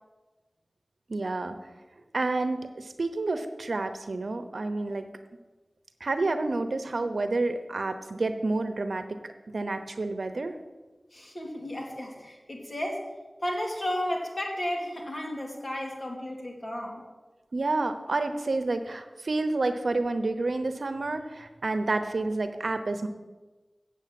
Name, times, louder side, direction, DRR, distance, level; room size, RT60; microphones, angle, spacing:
voice 1, 1.1-1.6 2.1-5.1 6.0-10.5 17.5-23.1, right 2 dB, 85° right, 9 dB, 0.9 m, -29 dB
voice 2, 11.1-13.1 13.4-17.0, left 1 dB, 45° left, 0 dB, 2.6 m, -33 dB
8.0 x 8.0 x 7.7 m, 1.2 s
wide cardioid pair, 55°, 0 cm